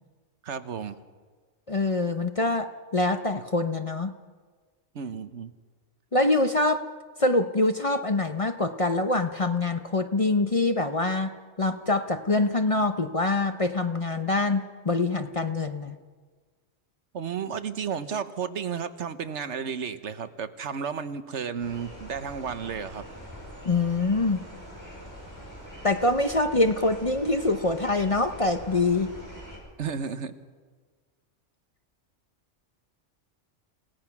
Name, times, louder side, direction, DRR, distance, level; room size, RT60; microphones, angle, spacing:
voice 1, 0.4-1.0 4.9-5.5 17.1-23.0 29.8-30.3, right 6 dB, 70° right, 11 dB, 1.3 m, -33 dB
voice 2, 1.7-4.1 6.1-6.9 7.2-11.3 11.6-16.0 23.6-24.4 25.8-29.1, left 2 dB, 30° left, 8 dB, 0.8 m, -25 dB
sound 1, 21.6-29.6, equal, 15° left, 5.5 m, -43 dB
29.0 x 17.0 x 5.9 m, 1.5 s
omnidirectional pair, 1.2 m